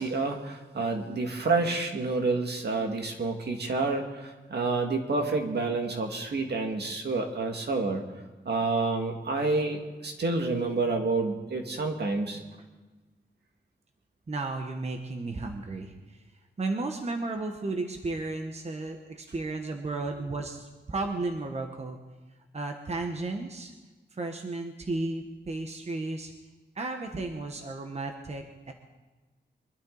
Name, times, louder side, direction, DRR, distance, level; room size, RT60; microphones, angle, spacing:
voice 1, 0.0-8.0 8.5-12.4, right 3 dB, 70° right, 3 dB, 2.0 m, -29 dB
voice 2, 14.3-16.2 16.6-22.0 22.5-23.7 24.1-26.3 26.7-28.7, right 2 dB, 35° right, 4 dB, 1.1 m, -34 dB
23.5 x 12.5 x 4.0 m, 1.2 s
wide cardioid pair, 150°, 18 cm